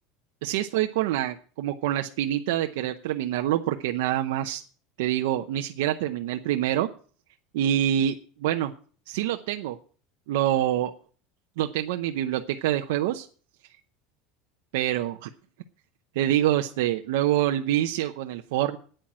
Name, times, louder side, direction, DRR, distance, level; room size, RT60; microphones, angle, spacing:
voice 1, 0.4-4.6 5.0-6.9 7.5-8.1 8.4-8.7 9.1-9.8 10.3-10.9 11.6-13.3 14.7-15.3 16.2-18.8, right 12 dB, 80° right, 5 dB, 0.7 m, -26 dB
9.1 x 9.0 x 7.4 m, 0.44 s
cardioid pair, 170°, 0 cm